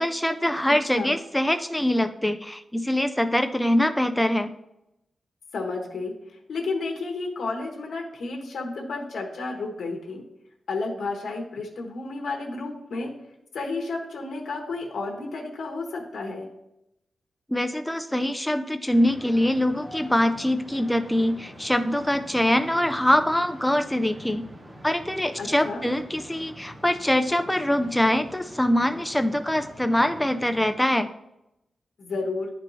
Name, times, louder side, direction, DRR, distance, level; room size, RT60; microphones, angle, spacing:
voice 1, 0.0-4.5 17.5-24.5 24.8-31.1, left 1 dB, 5° left, 8 dB, 0.4 m, -23 dB
voice 2, 0.7-1.2 5.5-6.1 6.5-10.2 10.7-13.1 13.5-16.5 25.4-25.9 32.0-32.5, left 3 dB, 85° left, 1 dB, 1.1 m, -32 dB
sound 1, 18.9-30.8, equal, 20° right, 1.0 m, -45 dB
11.5 x 4.5 x 2.7 m, 0.85 s
wide cardioid pair, 130°, 0 cm